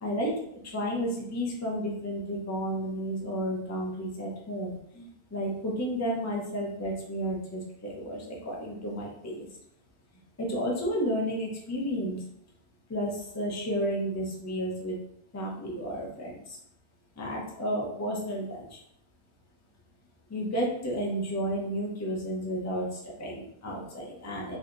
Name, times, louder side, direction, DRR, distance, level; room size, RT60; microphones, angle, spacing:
voice 1, 0.0-0.3 0.6-9.5 10.4-12.2 12.9-15.0 15.3-16.4 17.2-18.8 20.3-24.6, equal, 20° left, -2 dB, 0.6 m, -32 dB
3.4 x 2.7 x 2.5 m, 0.72 s
omnidirectional pair, 1.0 m